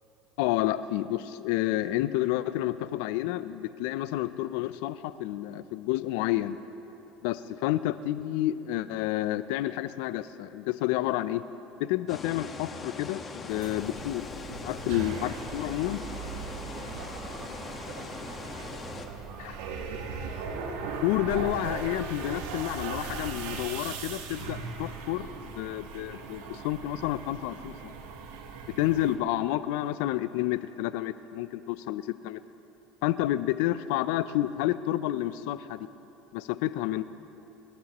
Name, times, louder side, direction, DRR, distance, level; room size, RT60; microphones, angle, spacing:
voice 1, 0.4-6.6 7.2-11.4 11.8-14.3 14.6-16.0 19.4-19.5 21.0-27.9 28.8-32.4 33.0-35.9 36.3-37.0, left 14 dB, 75° left, 14 dB, 0.5 m, -30 dB
sound 1, 12.1-19.1, left 4 dB, 30° left, 1.4 m, -41 dB
sound 2, 13.5-29.2, right 5 dB, 75° right, 1.5 m, -39 dB
voice 2, 16.5-20.2, right 5 dB, 60° right, 1 dB, 2.1 m, -49 dB
26.0 x 12.5 x 3.0 m, 2.9 s
supercardioid pair, 90°, 0 cm